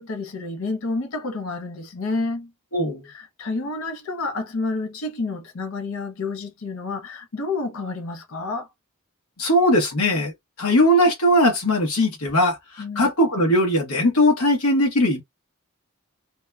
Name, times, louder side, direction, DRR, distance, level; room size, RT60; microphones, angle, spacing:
voice 1, 0.0-2.5 3.0-8.7 12.8-13.1, left 3 dB, 65° left, 0.6 m, -29 dB
voice 2, 2.7-3.1 9.4-10.3 10.6-12.6 13.0-15.2, left 1 dB, 85° left, 1.0 m, -19 dB
2.9 x 2.0 x 2.3 m
head